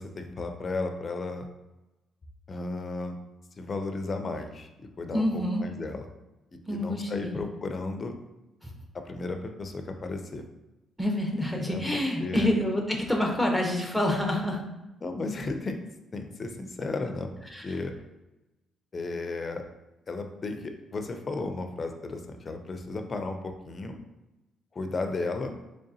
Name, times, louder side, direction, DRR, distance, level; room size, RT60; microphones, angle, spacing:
voice 1, 0.0-1.5 2.5-3.2 3.6-6.1 6.5-8.1 8.9-10.4 11.7-12.5 15.0-15.8 16.1-17.3 17.6-17.9 18.9-19.6 20.1-24.0 24.7-25.5, left 3 dB, 35° left, 5 dB, 0.5 m, -34 dB
voice 2, 5.1-5.6 6.7-7.4 8.6-8.7 11.0-14.6 17.5-17.7, left 1 dB, 5° right, 0 dB, 0.7 m, -27 dB
3.8 x 3.3 x 2.7 m, 1.0 s
cardioid pair, 90°, 0 cm